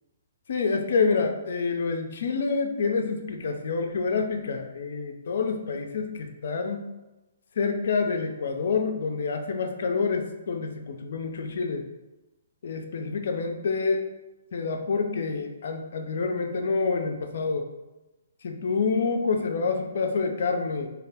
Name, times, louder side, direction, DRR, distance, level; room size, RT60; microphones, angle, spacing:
voice 1, 0.5-6.8 7.6-11.9 12.6-14.1 14.5-17.7 18.4-20.9, left 4 dB, 55° left, 5 dB, 0.4 m, -27 dB
3.2 x 2.2 x 2.6 m, 1.0 s
figure-of-eight pair, 130°, 0 cm